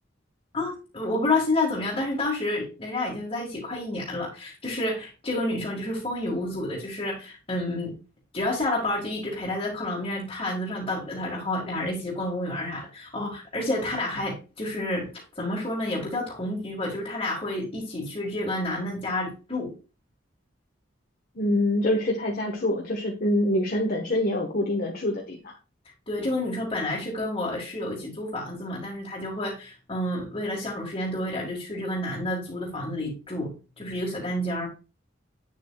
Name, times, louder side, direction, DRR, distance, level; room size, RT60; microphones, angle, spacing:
voice 1, 0.5-8.0 8.3-19.7 26.1-34.7, left 1 dB, 30° left, -5 dB, 1.9 m, -29 dB
voice 2, 21.3-25.5, left 1 dB, 50° left, -1 dB, 1.3 m, -25 dB
8.3 x 7.4 x 2.3 m, 0.32 s
head